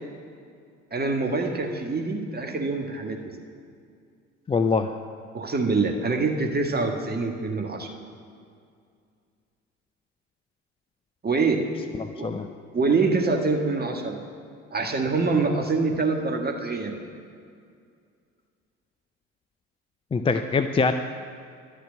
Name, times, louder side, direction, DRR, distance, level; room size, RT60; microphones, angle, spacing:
voice 1, 0.9-3.2 5.3-7.9 11.2-11.6 12.2-12.3 12.7-14.2 14.7-17.0, right 3 dB, 25° right, 3 dB, 1.6 m, -25 dB
voice 2, 4.5-4.9 12.0-12.5 20.1-20.9, left 4 dB, 15° left, 8 dB, 0.4 m, -23 dB
11.5 x 6.7 x 9.7 m, 2.3 s
figure-of-eight pair, 55°, 38 cm